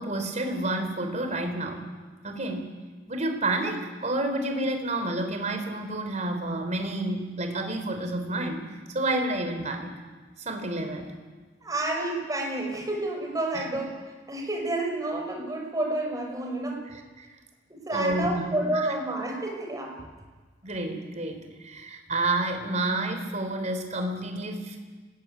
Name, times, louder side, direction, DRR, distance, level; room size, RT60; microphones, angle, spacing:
voice 1, 0.0-1.9 2.2-2.7 3.1-9.9 10.4-11.1 13.5-13.6 17.2-17.3 17.9-18.5 18.7-18.9 20.6-24.8, right 2 dB, 40° right, 5 dB, 4.2 m, -29 dB
voice 2, 11.6-14.0 14.3-16.8 17.7-20.1, right 1 dB, 20° right, 1 dB, 5.8 m, -30 dB
29.5 x 20.0 x 9.3 m, 1.4 s
head